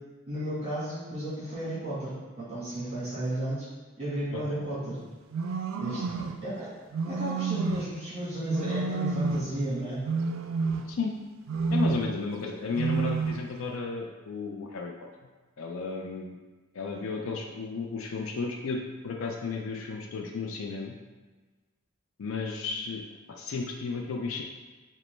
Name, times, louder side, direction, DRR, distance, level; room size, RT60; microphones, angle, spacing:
voice 1, 0.3-2.1 2.4-3.7 4.0-5.0 5.8-6.0 6.4-6.7 7.1-10.0, right 1 dB, 30° right, -11 dB, 1.4 m, -33 dB
sound 1, 5.3-6.4 6.9-8.0 8.5-9.6 10.0-11.1 11.5-12.2 12.7-13.5, right 4 dB, 75° right, 0.3 m, -29 dB
voice 2, 11.7-14.9 15.6-16.4 16.7-21.0 22.2-23.0 23.3-24.4, left 4 dB, 90° left, 1 dB, 0.4 m, -33 dB
5.1 x 2.1 x 3.2 m, 1.3 s
head